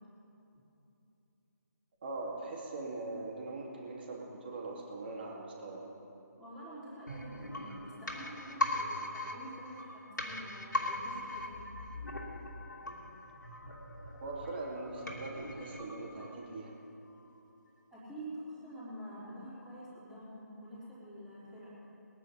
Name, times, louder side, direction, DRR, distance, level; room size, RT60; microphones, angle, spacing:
voice 1, 2.0-5.9 14.2-16.7, right 2 dB, 35° right, -2 dB, 2.6 m, -41 dB
voice 2, 6.4-11.7 17.9-21.7, equal, 5° right, -11 dB, 3.7 m, -47 dB
sound 1, 7.1-16.8 17.1-17.2, left 2 dB, 85° left, 2.8 m, -40 dB
21.0 x 9.6 x 5.6 m, 2.9 s
figure-of-eight pair, 155°, 10 cm